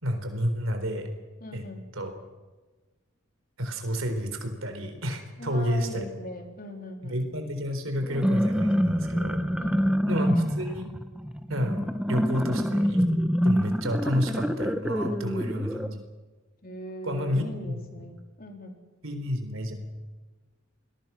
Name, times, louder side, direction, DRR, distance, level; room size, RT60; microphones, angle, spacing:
voice 1, 0.0-1.1 1.5-1.7 1.9-2.1 3.6-6.1 7.0-9.4 10.1-10.9 11.5-11.8 12.1-13.1 13.4-16.0 17.0-18.0 19.0-19.7, equal, 75° right, 7 dB, 4.2 m, -30 dB
voice 2, 1.4-1.9 5.4-7.2 9.6-10.1 15.1-16.0 16.6-18.8, equal, 45° left, 3 dB, 4.1 m, -40 dB
sound 1, 8.0-15.9, equal, 5° right, 1.2 m, -26 dB
29.0 x 21.5 x 6.1 m, 1.3 s
head